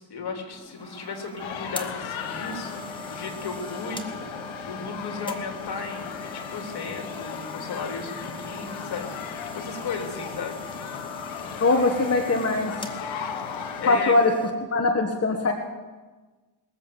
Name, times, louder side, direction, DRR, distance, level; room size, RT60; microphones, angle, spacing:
voice 1, 0.0-2.8 3.1-10.6 13.8-14.2, left 4 dB, 55° left, 2 dB, 3.4 m, -35 dB
sound 1, 0.5-14.5, left 1 dB, 10° left, 2.1 m, -40 dB
sound 2, 1.4-13.9, left 8 dB, 80° left, 1.2 m, -37 dB
voice 2, 11.6-12.7 13.9-14.3 14.7-15.5, left 3 dB, 30° left, 3 dB, 1.6 m, -21 dB
21.5 x 8.2 x 7.1 m, 1.3 s
supercardioid pair, 65°, 46 cm